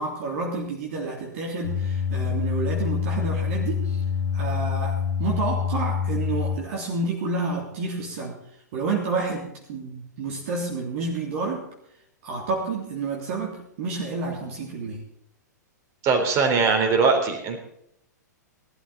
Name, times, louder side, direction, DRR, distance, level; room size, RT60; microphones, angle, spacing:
voice 1, 0.0-4.0 4.3-8.4 8.7-11.6 12.2-15.0, right 3 dB, 45° right, 0 dB, 3.2 m, -29 dB
sound 1, 1.6-6.5, left 6 dB, 80° left, 1.5 m, -26 dB
voice 2, 16.0-17.6, right 4 dB, 30° right, 4 dB, 3.9 m, -21 dB
19.0 x 13.0 x 4.1 m, 0.77 s
figure-of-eight pair, 105°, 10 cm